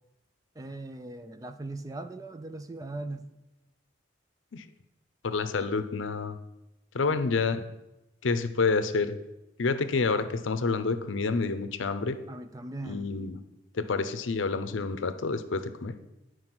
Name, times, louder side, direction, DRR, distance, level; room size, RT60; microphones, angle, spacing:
voice 1, 0.6-3.3 7.1-7.2 12.3-13.1, right 2 dB, 20° right, 10 dB, 0.4 m, -39 dB
voice 2, 5.2-6.4 6.9-7.7 8.2-9.1 9.6-12.2 12.8-13.4 13.7-16.0, left 4 dB, 80° left, 11 dB, 0.6 m, -28 dB
9.6 x 4.7 x 6.0 m, 0.97 s
head